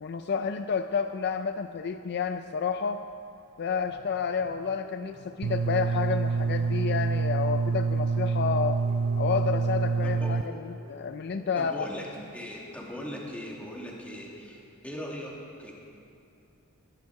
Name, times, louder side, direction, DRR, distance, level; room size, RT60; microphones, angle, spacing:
voice 1, 0.0-3.1 3.6-8.8 9.2-10.4 10.6-11.9, left 5 dB, 50° left, 8 dB, 0.4 m, -30 dB
sound 1, 3.6-12.1, left 1 dB, 25° left, 4.5 m, -53 dB
sound 2, 5.4-10.4, right 4 dB, 75° right, 0.4 m, -27 dB
voice 2, 11.6-12.1 12.3-15.3 15.6-15.7, equal, 5° left, -3 dB, 2.3 m, -39 dB
20.0 x 11.0 x 4.7 m, 2.6 s
head